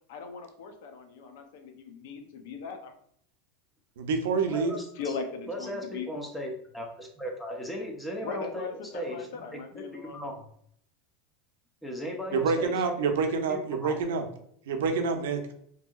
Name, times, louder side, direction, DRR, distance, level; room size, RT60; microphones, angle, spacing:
voice 1, 0.1-2.9 5.0-6.1 8.2-10.4, left 5 dB, 65° left, 6 dB, 0.5 m, -39 dB
voice 2, 4.0-4.7 12.3-14.2 14.7-15.4, right 5 dB, 90° right, 6 dB, 0.5 m, -27 dB
voice 3, 4.5-5.2 5.5-9.6 9.9-10.5 11.8-12.8 13.5-14.0, equal, 5° left, 1 dB, 0.5 m, -37 dB
2.7 x 2.7 x 2.3 m, 0.66 s
supercardioid pair, 160°, 0 cm